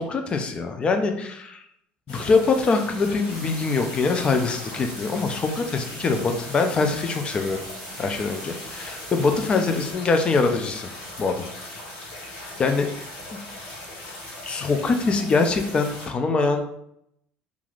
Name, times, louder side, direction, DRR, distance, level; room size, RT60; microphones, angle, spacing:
voice 1, 0.1-1.6 2.1-7.6 8.0-10.9 11.2-11.5 12.6-12.9 13.3-13.4 14.4-16.6, left 4 dB, 30° left, 6 dB, 0.4 m, -23 dB
sound 1, 2.1-16.1, left 1 dB, 85° left, 1.1 m, -39 dB
sound 2, 3.3-9.9, right 1 dB, 10° left, 1.5 m, -42 dB
3.1 x 2.4 x 2.4 m, 0.74 s
cardioid pair, 130°, 4 cm